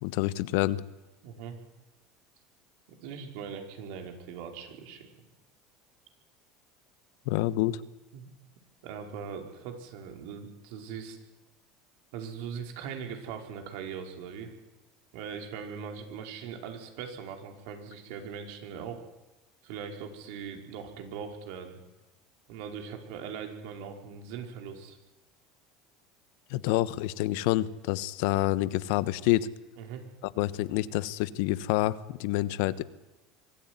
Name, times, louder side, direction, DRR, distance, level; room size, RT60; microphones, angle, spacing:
voice 1, 0.0-0.8 7.3-7.8 26.5-29.5 30.4-32.8, left 16 dB, 75° left, 16 dB, 1.1 m, -27 dB
voice 2, 1.2-1.6 2.9-5.1 8.1-8.3 8.8-11.2 12.1-14.5 15.1-19.0 19.6-21.8 22.5-25.0 29.8-30.0, right 7 dB, 75° right, 4 dB, 5.0 m, -40 dB
24.0 x 13.5 x 9.7 m, 1.0 s
hypercardioid pair, 90°, 0 cm